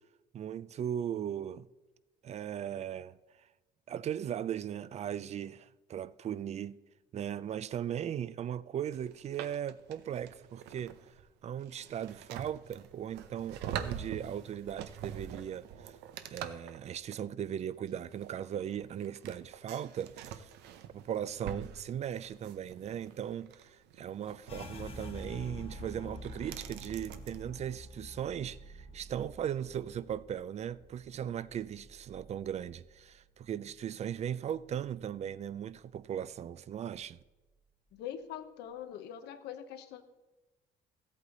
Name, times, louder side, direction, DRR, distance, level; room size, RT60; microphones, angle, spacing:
voice 1, 0.3-1.7 2.2-3.2 3.9-6.8 7.1-11.0 11.4-16.0 16.3-20.5 20.9-37.2, right 9 dB, 40° right, 0.4 m, -38 dB
sound 1, 8.9-27.4, right 9 dB, 90° right, 0.7 m, -46 dB
sound 2, 24.5-33.9 34.2-35.4 35.7-36.2 36.7-37.3, left 1 dB, 35° left, 1.1 m, -49 dB
voice 2, 37.9-40.0, left 10 dB, 80° left, 0.9 m, -43 dB
14.0 x 8.3 x 4.0 m
cardioid pair, 110°, 17 cm